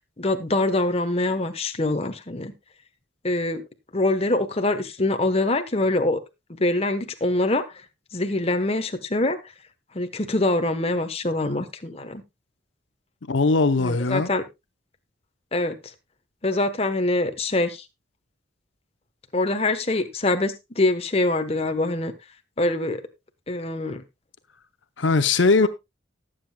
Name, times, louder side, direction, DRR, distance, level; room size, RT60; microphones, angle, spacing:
voice 1, 0.2-2.5 3.2-3.6 3.9-6.2 6.6-7.6 8.1-9.4 9.9-12.2 13.8-14.4 15.5-15.8 16.4-17.8 19.3-22.1 22.6-23.0 23.5-24.0, left 2 dB, 30° left, 1.1 m, -24 dB
voice 2, 13.3-14.3 25.0-25.7, left 3 dB, 80° left, 0.8 m, -20 dB
19.0 x 7.7 x 2.3 m
head